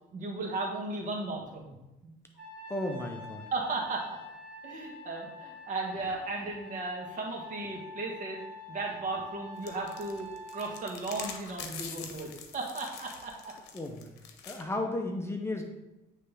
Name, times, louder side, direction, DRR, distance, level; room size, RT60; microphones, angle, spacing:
voice 1, 0.1-1.7 2.0-2.1 3.5-4.1 4.6-8.4 8.7-13.5, right 3 dB, 50° right, -1 dB, 1.5 m, -35 dB
Trumpet, 2.3-10.9, left 2 dB, 10° right, 2.1 m, -46 dB
voice 2, 2.7-3.4 13.7-14.1 14.5-15.6, left 1 dB, 15° left, 3 dB, 0.6 m, -34 dB
sound 1, 9.6-14.6, left 7 dB, 85° left, 0.8 m, -44 dB
9.0 x 3.3 x 3.4 m, 0.95 s
cardioid pair, 110°, 17 cm